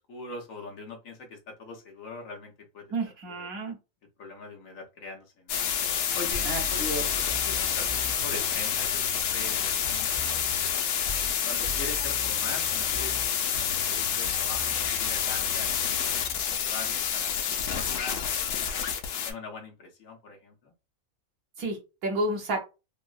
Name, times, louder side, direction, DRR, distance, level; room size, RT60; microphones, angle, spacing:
voice 1, 0.1-2.9 3.3-3.5 4.2-5.6 6.1-10.8 11.4-18.7 19.2-20.7, left 3 dB, 65° left, 1.1 m, -42 dB
voice 2, 2.9-3.8 6.4-7.1 21.6-22.6, right 1 dB, 70° right, 1.3 m, -31 dB
sound 1, 5.5-19.3, left 8 dB, 85° left, 1.1 m, -28 dB
sound 2, 6.3-11.4 11.6-16.4, left 1 dB, 45° right, 1.1 m, -42 dB
3.6 x 2.0 x 2.3 m
omnidirectional pair, 1.6 m